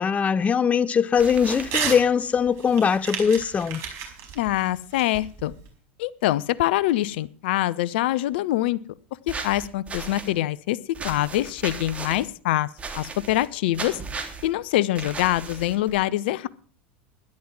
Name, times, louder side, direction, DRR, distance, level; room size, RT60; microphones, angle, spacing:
voice 1, 0.0-3.8, left 7 dB, 25° left, 0.5 m, -21 dB
sound 1, 1.2-1.7 9.3-10.3 10.9-12.2 12.8-13.5 13.7-14.5 14.9-15.9, right 4 dB, 20° right, 3.3 m, -35 dB
Crumpling crinkling / Tearing, 1.7-2.0 2.4-5.7, right 7 dB, 50° right, 5.1 m, -32 dB
voice 2, 4.4-5.5 6.0-8.8 9.3-10.8 11.0-12.7 12.9-14.0 14.4-16.5, left 15 dB, 65° left, 0.7 m, -24 dB
13.0 x 11.0 x 6.0 m
hypercardioid pair, 80°, 6 cm